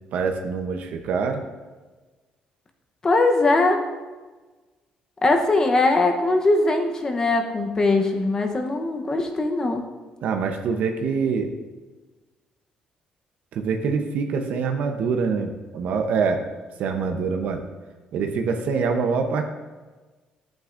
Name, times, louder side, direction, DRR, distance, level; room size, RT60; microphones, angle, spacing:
voice 1, 0.1-1.4 10.2-11.5 13.5-16.4 16.8-17.6 18.1-19.4, right 5 dB, 65° right, 5 dB, 0.8 m, -25 dB
voice 2, 3.0-3.8 5.2-9.8, left 2 dB, 25° left, 4 dB, 0.9 m, -21 dB
11.5 x 8.9 x 2.6 m, 1.3 s
cardioid pair, 150°, 3 cm